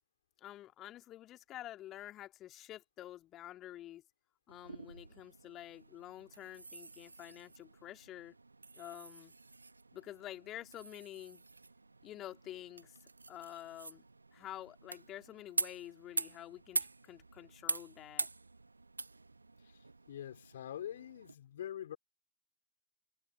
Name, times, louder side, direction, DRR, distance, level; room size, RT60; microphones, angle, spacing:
voice 1, 0.4-4.0 4.5-8.3 8.8-9.3 9.9-11.4 12.0-13.0 13.3-14.0 14.3-18.3, left 13 dB, 35° left, 3.0 m, -49 dB
sound 1, 4.5-21.4, right 3 dB, 80° right, 1.4 m, -44 dB
voice 2, 19.6-22.0, left 10 dB, 60° left, 4.7 m, -45 dB
figure-of-eight pair, 90°, 0 cm